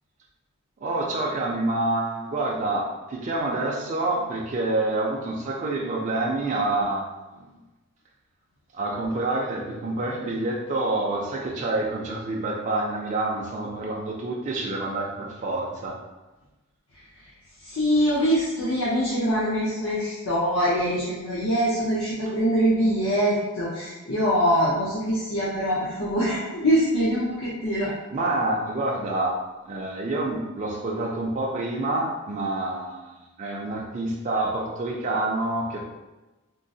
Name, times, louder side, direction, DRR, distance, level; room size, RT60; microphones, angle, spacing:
voice 1, 0.8-7.0 7.3-7.5 8.7-16.0 28.1-29.3 29.6-35.8, right 2 dB, 35° right, -3 dB, 0.3 m, -27 dB
voice 2, 17.6-27.9, equal, 75° left, -8 dB, 0.7 m, -23 dB
3.7 x 2.0 x 2.6 m, 1.1 s
head